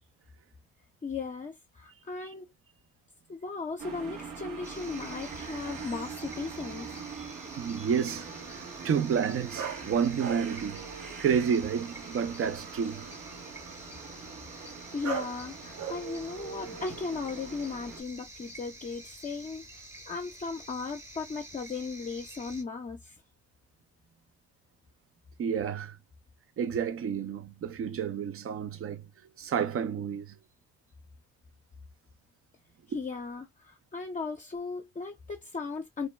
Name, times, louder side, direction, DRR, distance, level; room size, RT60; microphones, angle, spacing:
voice 1, 1.0-2.5 3.3-6.9 14.5-19.7 20.1-23.2 32.9-36.1, left 4 dB, 25° left, 0.6 m, -37 dB
sound 1, 3.8-18.0, right 5 dB, 85° right, 1.2 m, -43 dB
sound 2, 4.6-22.6, right 1 dB, 10° right, 0.7 m, -48 dB
sound 3, 5.8-6.9 9.6-11.4 11.7-12.4 15.0-15.5 15.8-18.0 18.4-18.9, right 7 dB, 65° right, 0.9 m, -42 dB
voice 2, 7.6-10.8 11.2-13.1 25.4-26.0 26.6-29.0 29.4-30.3, right 7 dB, 50° right, 0.5 m, -30 dB
2.6 x 2.1 x 3.1 m
cardioid pair, 90°, 30 cm